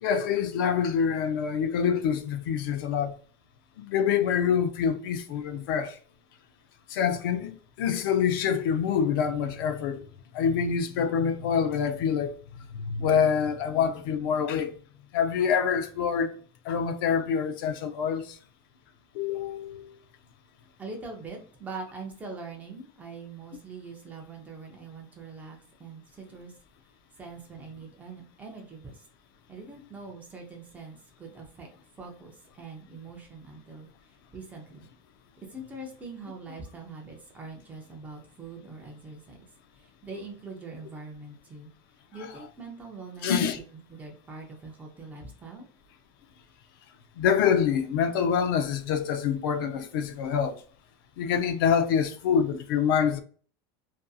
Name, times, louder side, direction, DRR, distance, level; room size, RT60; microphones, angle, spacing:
voice 1, 0.0-3.2 3.8-6.0 6.9-10.0 10.3-12.4 12.7-14.7 15.1-16.4 16.6-18.4 19.1-20.0 43.2-43.6 47.2-50.6 51.2-53.2, left 7 dB, 65° left, 0.4 m, -26 dB
voice 2, 20.8-26.5 27.2-29.0 29.5-31.7 32.0-34.9 35.5-39.4 39.7-41.7 42.1-43.6 43.9-45.7, right 3 dB, 10° right, 0.4 m, -43 dB
2.6 x 2.5 x 2.3 m
supercardioid pair, 175°, 12 cm